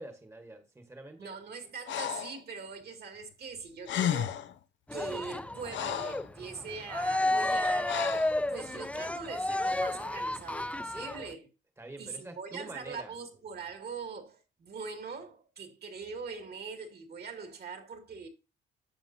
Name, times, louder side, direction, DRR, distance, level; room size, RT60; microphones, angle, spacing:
voice 1, 0.0-1.3 11.8-13.1, right 2 dB, 15° right, 1.4 m, -46 dB
voice 2, 1.2-4.4 4.9-8.1 8.5-11.5 12.0-18.3, right 5 dB, 55° right, 2.3 m, -42 dB
Breathing, 1.9-2.4 3.6-3.7 3.8-4.5 5.2-6.3 7.9-8.4, left 10 dB, 70° left, 0.7 m, -33 dB
Cheering, 4.9-11.3, left 1 dB, 5° left, 0.5 m, -32 dB
11.0 x 7.2 x 2.7 m
cardioid pair, 90°, 20 cm